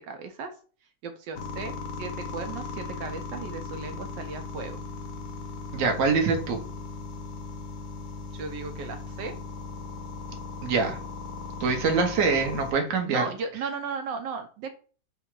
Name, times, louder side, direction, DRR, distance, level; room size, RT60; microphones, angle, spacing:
voice 1, 0.1-0.5 1.0-4.8 8.3-9.3 13.1-14.7, right 5 dB, 80° right, 6 dB, 1.2 m, -36 dB
sound 1, 1.4-12.7, left 4 dB, 65° left, 1.1 m, -38 dB
voice 2, 5.7-6.6 10.6-11.0 11.6-13.2, right 4 dB, 55° right, 3 dB, 1.0 m, -24 dB
4.8 x 2.1 x 4.5 m, 0.40 s
omnidirectional pair, 2.0 m